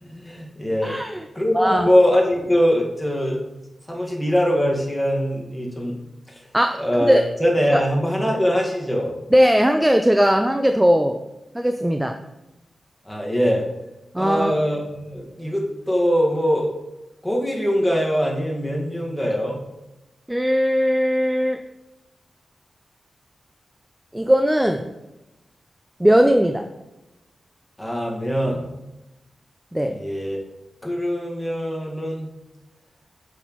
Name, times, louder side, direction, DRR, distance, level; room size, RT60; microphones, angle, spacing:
voice 1, 0.0-1.0 1.4-3.4 3.9-6.0 6.3-6.4 6.8-9.1 13.1-13.7 14.2-16.7 17.2-19.6 27.8-28.7 29.9-30.4 30.8-32.3, equal, 10° left, -2 dB, 1.7 m, -22 dB
voice 2, 0.8-1.2 1.5-1.9 6.5-7.2 7.7-7.8 9.3-11.2 11.5-12.2 14.1-14.6 20.3-21.6 24.1-24.9 26.0-26.6 29.7-30.0, equal, 10° right, 6 dB, 0.5 m, -19 dB
7.8 x 6.0 x 3.1 m, 0.98 s
cardioid pair, 75°, 0 cm